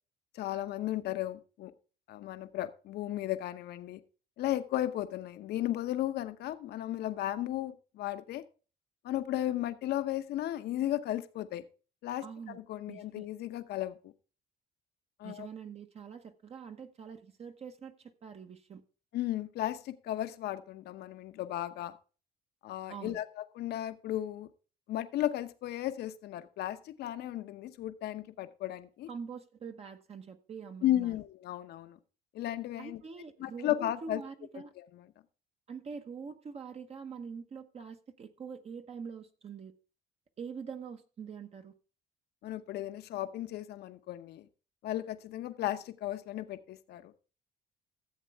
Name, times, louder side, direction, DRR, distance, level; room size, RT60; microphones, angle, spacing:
voice 1, 0.3-1.7 2.1-4.0 4.4-8.4 9.0-11.6 12.0-14.1 15.2-15.5 19.1-21.9 22.6-24.5 24.9-29.1 30.8-32.0 32.3-33.0 33.4-34.2 34.6-35.0 42.4-44.5 44.8-47.1, left 13 dB, 70° left, 11 dB, 0.9 m, -35 dB
voice 2, 12.2-12.6 12.9-13.3 15.2-18.8 22.9-23.2 29.1-31.1 32.8-34.7 35.7-39.7 40.4-41.7, right 6 dB, 35° right, 6 dB, 1.0 m, -44 dB
14.5 x 7.5 x 3.5 m, 0.36 s
cardioid pair, 110°, 17 cm